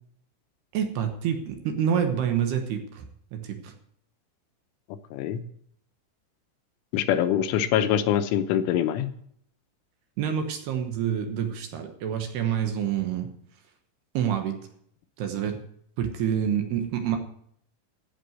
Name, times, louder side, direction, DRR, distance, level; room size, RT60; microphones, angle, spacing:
voice 1, 0.7-3.7 10.2-13.3 14.1-14.6 15.2-15.6 16.0-17.2, right 8 dB, 70° right, 5 dB, 2.8 m, -27 dB
voice 2, 5.1-5.4 6.9-9.1, left 10 dB, 85° left, 10 dB, 3.3 m, -24 dB
15.5 x 5.9 x 8.0 m, 0.66 s
omnidirectional pair, 5.6 m